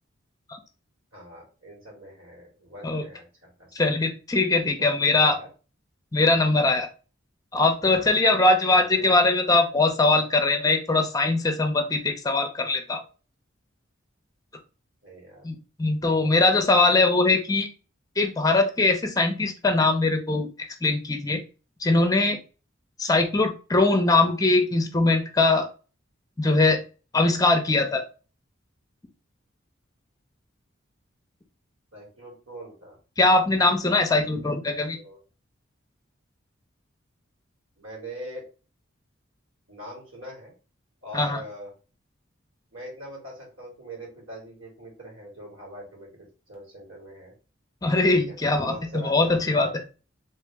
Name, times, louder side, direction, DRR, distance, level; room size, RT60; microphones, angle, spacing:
voice 1, 1.1-3.3 3.6-3.8 4.8-5.5 8.8-9.1 15.0-15.5 16.1-16.5 31.9-33.0 34.9-35.2 37.8-38.5 39.7-40.5 41.0-41.7 42.7-47.3 48.1-49.7, right 1 dB, 85° right, -2 dB, 2.0 m, -42 dB
voice 2, 3.8-5.4 6.1-6.9 7.5-13.0 15.4-17.7 18.2-20.5 20.8-21.4 21.8-22.4 23.0-25.7 26.4-26.8 27.1-28.0 33.2-35.0 41.1-41.4 47.8-48.7 49.0-49.7, left 2 dB, 20° left, 4 dB, 0.5 m, -21 dB
3.0 x 2.8 x 3.4 m, 0.34 s
head